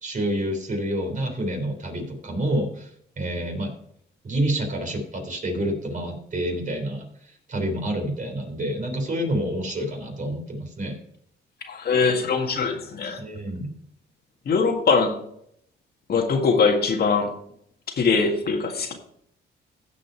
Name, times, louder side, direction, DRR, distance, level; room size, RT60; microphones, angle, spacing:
voice 1, 0.0-2.9 3.2-3.7 4.2-11.0 13.2-13.7, right 1 dB, 40° right, 3 dB, 3.5 m, -28 dB
voice 2, 11.7-13.2 14.5-15.2 16.1-17.3 17.9-18.9, left 5 dB, 50° left, 3 dB, 1.8 m, -22 dB
15.5 x 5.2 x 4.5 m, 0.69 s
cardioid pair, 90°, 20 cm